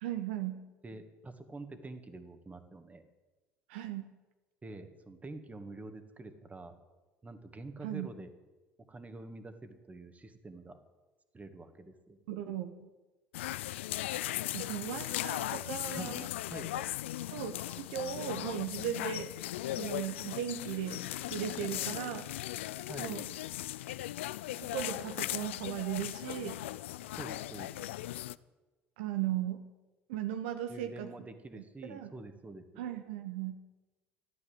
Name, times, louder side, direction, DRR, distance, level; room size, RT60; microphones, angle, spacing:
voice 1, 0.0-0.6 3.7-4.1 7.8-8.1 12.3-12.9 14.5-16.3 17.3-19.3 19.8-22.3 23.0-23.3 24.6-26.6 29.0-29.6 30.1-31.1 31.6-32.1 32.8-33.6, right 10 dB, 75° right, 8 dB, 1.1 m, -37 dB
voice 2, 0.8-3.0 4.6-6.7 7.2-8.3 8.9-10.8 11.3-12.2 16.0-16.1 16.5-16.7 22.9-23.2 27.2-27.9 30.7-32.8, right 2 dB, 20° right, 8 dB, 2.2 m, -47 dB
sound 1, 13.3-28.3, left 15 dB, 80° left, 0.4 m, -38 dB
13.5 x 12.0 x 7.9 m, 1.2 s
hypercardioid pair, 65°, 6 cm